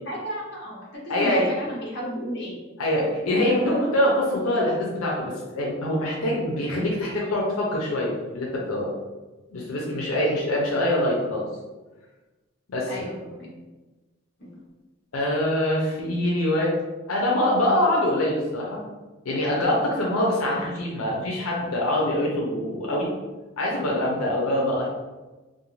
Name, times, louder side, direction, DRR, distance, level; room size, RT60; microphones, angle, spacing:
voice 1, 0.0-2.6 3.0-3.1 3.4-3.6 10.2-10.4 12.9-13.5 14.4-14.6, equal, 55° left, -5 dB, 0.8 m, -34 dB
voice 2, 1.1-1.5 2.8-8.9 9.5-11.5 12.7-13.1 15.1-16.7 17.1-18.8 19.2-23.1 23.6-24.9, left 1 dB, 90° left, -3 dB, 0.6 m, -24 dB
2.5 x 2.2 x 3.0 m, 1.2 s
head